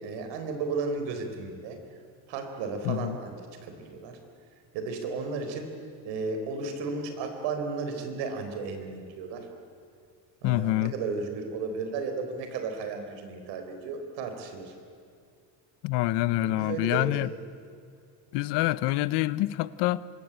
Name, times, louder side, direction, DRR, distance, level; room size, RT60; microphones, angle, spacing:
voice 1, 0.0-1.8 2.3-3.4 3.6-4.2 4.7-5.7 6.0-9.5 10.4-14.7 16.4-17.2, right 4 dB, 75° right, 4.2 m, -34 dB
voice 2, 2.8-3.2 10.4-10.9 15.8-17.3 18.3-20.0, left 17 dB, 75° left, 0.9 m, -26 dB
25.0 x 22.0 x 8.9 m
cardioid pair, 130°, 43 cm